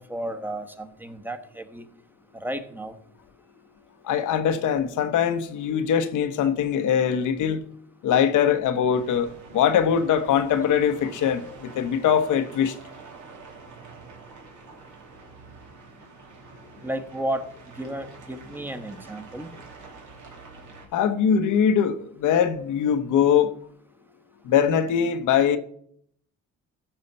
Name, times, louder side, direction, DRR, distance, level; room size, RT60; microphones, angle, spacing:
voice 1, 0.0-1.9 2.3-3.0 16.8-19.5, right 1 dB, 5° right, 1.2 m, -33 dB
voice 2, 4.0-7.6 8.0-12.8 20.9-23.5 24.4-25.6, left 8 dB, 80° left, 1.1 m, -22 dB
sound 1, 8.9-20.9, right 4 dB, 75° right, 2.9 m, -47 dB
14.5 x 5.7 x 5.4 m
cardioid pair, 90°, 30 cm